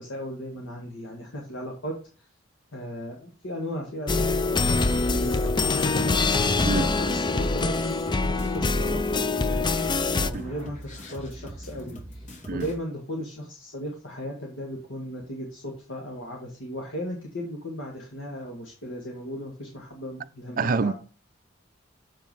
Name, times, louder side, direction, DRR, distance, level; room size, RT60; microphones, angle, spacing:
voice 1, 0.0-2.0 2.7-5.6 5.8-6.1 6.4-20.9, equal, 70° left, 1.7 m, -36 dB
sound 1, 4.1-10.3, left 3 dB, 25° left, 0.5 m, -24 dB
sound 2, 4.6-12.8, right 1 dB, 40° left, 2.4 m, -42 dB
voice 2, 20.6-20.9, right 4 dB, 45° right, 0.5 m, -26 dB
7.2 x 5.2 x 5.4 m
head